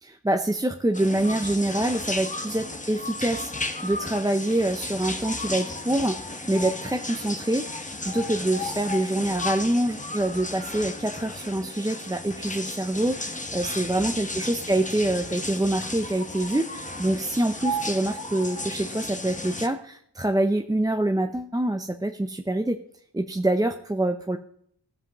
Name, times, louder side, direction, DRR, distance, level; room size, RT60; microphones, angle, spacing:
voice 1, 0.0-22.8 23.1-24.4, right 1 dB, 10° right, 5 dB, 0.5 m, -26 dB
sound 1, 0.9-19.7, left 2 dB, 20° left, 0.8 m, -34 dB
16.5 x 7.5 x 2.9 m, 0.68 s
cardioid pair, 45°, 42 cm